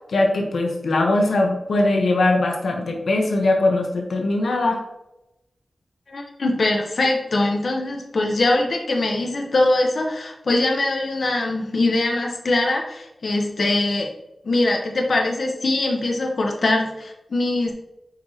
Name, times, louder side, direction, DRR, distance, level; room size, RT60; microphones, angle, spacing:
voice 1, 0.1-4.8, left 2 dB, 85° left, 2 dB, 1.1 m, -20 dB
voice 2, 6.1-14.1 14.4-17.7, left 2 dB, 60° left, 1 dB, 1.1 m, -22 dB
8.9 x 4.9 x 2.9 m, 0.91 s
wide cardioid pair, 130°, 0 cm